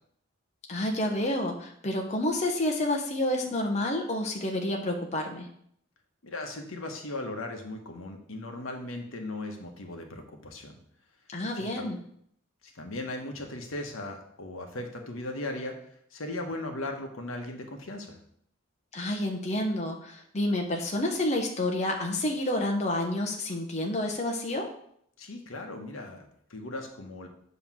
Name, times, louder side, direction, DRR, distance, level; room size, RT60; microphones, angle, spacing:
voice 1, 0.7-5.5 11.3-12.0 18.9-24.7, left 1 dB, 35° left, 2 dB, 0.8 m, -29 dB
voice 2, 6.2-10.8 11.5-11.9 12.6-15.8 16.1-18.2 25.2-27.3, left 2 dB, 85° left, 3 dB, 1.1 m, -37 dB
7.5 x 3.1 x 6.0 m, 0.68 s
head